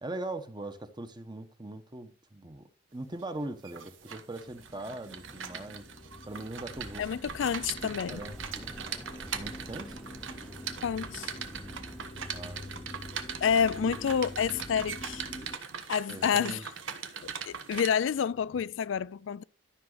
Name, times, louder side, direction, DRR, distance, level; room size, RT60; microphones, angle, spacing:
voice 1, 0.0-5.8 6.2-7.0 8.1-8.7 9.3-10.0 12.3-12.9 13.9-14.0 16.1-16.6, right 2 dB, 25° right, 1.0 m, -41 dB
sound 1, 3.2-17.9, right 7 dB, 90° right, 1.3 m, -41 dB
sound 2, 4.4-15.6, left 1 dB, 25° left, 0.9 m, -46 dB
sound 3, 6.8-12.0, equal, 5° right, 0.4 m, -50 dB
voice 2, 7.0-8.2 10.8-11.4 13.4-15.3 15.9-16.7 17.2-19.4, left 7 dB, 75° left, 0.4 m, -29 dB
12.5 x 6.0 x 3.9 m
head